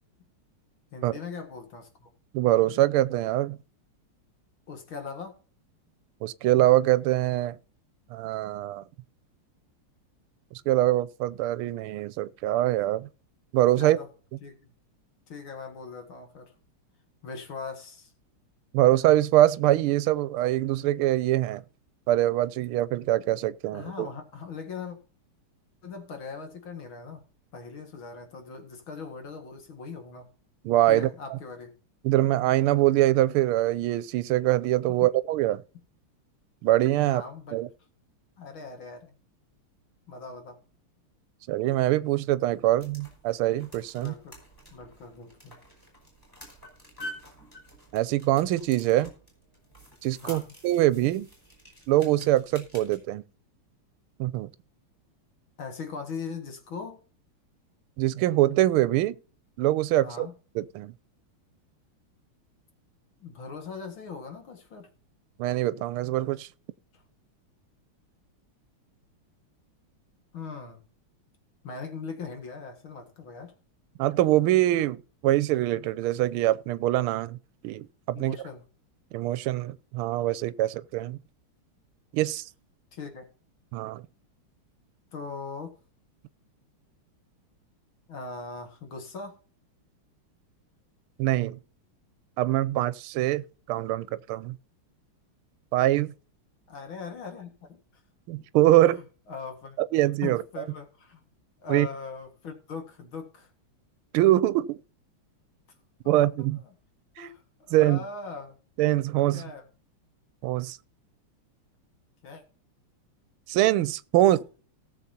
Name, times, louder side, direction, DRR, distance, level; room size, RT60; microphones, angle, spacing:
voice 1, 0.9-2.1 4.7-5.4 13.8-14.1 14.4-14.7 15.3-16.5 17.2-18.1 23.7-25.0 25.8-27.2 27.5-30.3 30.9-31.7 34.9-35.1 37.0-37.6 38.4-39.2 40.1-40.6 44.0-44.4 44.7-45.6 50.2-50.5 55.6-57.0 60.0-60.3 63.2-64.9 66.9-67.0 70.3-70.8 71.6-73.5 78.1-78.7 82.9-83.3 85.1-85.7 88.1-89.4 96.7-97.8 98.8-99.8 100.2-101.2 101.6-103.5 106.0-106.2 106.7-106.8 107.2-108.6 109.3-109.7 112.2-112.4, left 5 dB, 65° left, 2.6 m, -40 dB
voice 2, 2.3-3.6 6.2-7.6 8.1-8.8 10.7-13.1 13.5-14.0 18.7-21.6 22.1-24.1 30.6-31.4 32.0-35.6 36.6-37.2 37.5-37.7 41.5-44.1 47.9-49.1 50.0-51.3 51.9-53.2 54.2-54.5 58.0-59.2 59.6-60.3 60.5-60.9 65.4-66.5 74.0-77.4 77.6-78.4 79.1-81.2 82.1-82.5 83.7-84.0 91.2-91.6 92.4-94.6 95.7-96.1 98.3-99.0 99.9-100.4 101.7-101.9 104.1-104.8 106.1-106.6 107.2-107.3 107.7-108.0 108.8-109.4 110.4-110.8 113.5-114.4, right 15 dB, 80° right, 1.5 m, -24 dB
sound 1, 42.5-53.0, equal, 10° left, 5.1 m, -48 dB
18.5 x 7.1 x 2.8 m
omnidirectional pair, 2.4 m